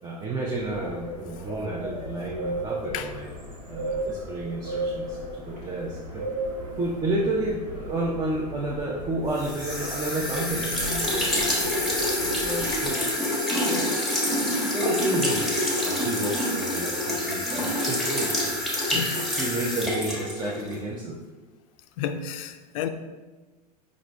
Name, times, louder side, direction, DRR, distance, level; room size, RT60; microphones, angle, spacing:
voice 1, 0.0-3.3 3.7-6.2 6.8-13.1 13.7-13.9 14.7-19.0 19.4-21.2, right 2 dB, 20° right, 0.6 m, -31 dB
sound 1, 0.5-13.1, right 1 dB, 90° right, 1.2 m, -36 dB
sound 2, 9.4-20.8, left 1 dB, ahead, 1.1 m, -27 dB
voice 2, 22.0-22.9, left 8 dB, 55° left, 0.4 m, -31 dB
4.9 x 2.6 x 3.2 m
hypercardioid pair, 90°, 21 cm